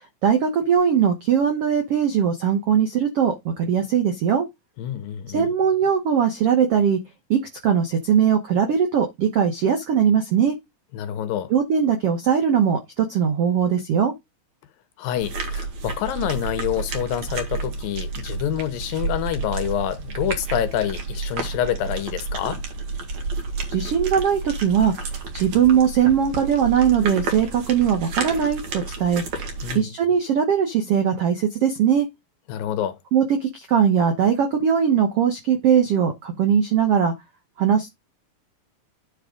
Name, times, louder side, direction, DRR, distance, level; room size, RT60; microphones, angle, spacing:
voice 1, 0.2-4.5 5.3-7.0 7.3-10.5 11.5-14.1 23.7-24.9 25.3-29.2 29.7-32.1 33.1-37.1 37.6-38.0, right 8 dB, 90° right, 1.3 m, -20 dB
voice 2, 4.8-5.5 10.9-11.5 15.0-22.6 29.6-29.9 32.5-33.0, left 11 dB, 75° left, 2.3 m, -27 dB
sound 1, 15.2-29.8, right 3 dB, 55° right, 2.6 m, -31 dB
9.8 x 3.6 x 5.0 m
omnidirectional pair, 4.5 m